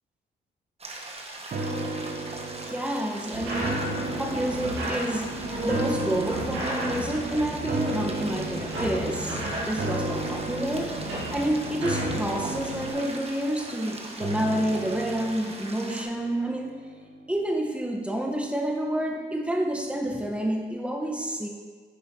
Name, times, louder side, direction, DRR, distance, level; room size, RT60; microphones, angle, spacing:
sound 1, 0.8-16.0, right 2 dB, 30° right, 1.1 m, -41 dB
sound 2, 1.5-16.8 17.2-17.3, right 2 dB, 55° right, 0.9 m, -35 dB
voice 1, 2.3-16.7 17.3-21.5, right 1 dB, 5° right, 0 dB, 1.1 m, -29 dB
sound 3, 3.3-12.9, right 1 dB, 80° right, 1.8 m, -34 dB
9.4 x 5.4 x 2.9 m, 1.5 s
supercardioid pair, 55°, 19 cm